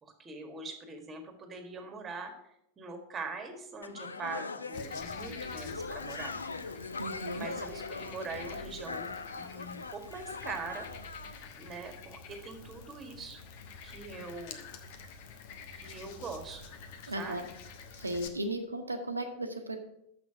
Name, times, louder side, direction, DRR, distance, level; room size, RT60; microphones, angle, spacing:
voice 1, 0.0-2.3 2.8-6.3 7.3-10.9 11.6-13.4 13.8-14.6 15.7-16.8 17.1-17.4 18.0-18.1, right 3 dB, 20° right, 5 dB, 1.6 m, -42 dB
sound 1, 3.8-11.3, left 4 dB, 75° left, 0.4 m, -41 dB
Frog, 4.7-18.3, left 5 dB, 50° left, 0.9 m, -48 dB
voice 2, 7.0-7.5 17.1-17.4 18.0-19.8, right 1 dB, 80° right, 7 dB, 0.9 m, -35 dB
7.1 x 6.0 x 5.9 m, 0.78 s
figure-of-eight pair, 90°, 0 cm